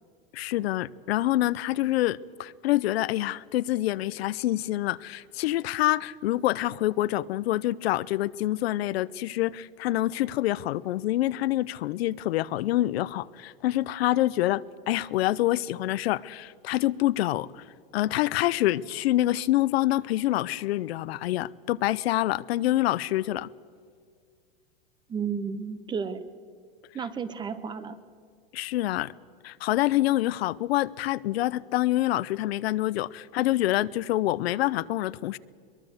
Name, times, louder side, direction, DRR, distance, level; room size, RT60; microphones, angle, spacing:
voice 1, 0.3-17.6 17.9-23.5 28.5-29.1 29.4-35.4, left 15 dB, 70° left, 18 dB, 0.7 m, -26 dB
voice 2, 25.1-26.2 26.9-28.0, right 6 dB, 15° right, 14 dB, 0.8 m, -32 dB
22.5 x 22.0 x 8.0 m, 2.1 s
supercardioid pair, 160°, 32 cm